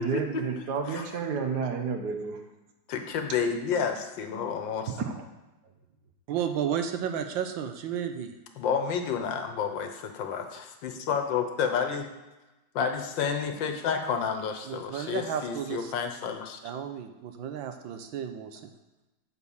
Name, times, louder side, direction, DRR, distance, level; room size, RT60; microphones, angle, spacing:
voice 1, 0.0-2.4 5.0-5.3, right 5 dB, 65° right, 5 dB, 1.4 m, -31 dB
voice 2, 2.9-4.9 8.6-12.1 12.7-16.6, left 6 dB, 75° left, 5 dB, 1.6 m, -30 dB
voice 3, 6.3-8.3 14.7-15.9 16.6-18.7, right 8 dB, 80° right, 7 dB, 1.5 m, -33 dB
8.5 x 4.3 x 7.0 m, 1.1 s
omnidirectional pair, 2.1 m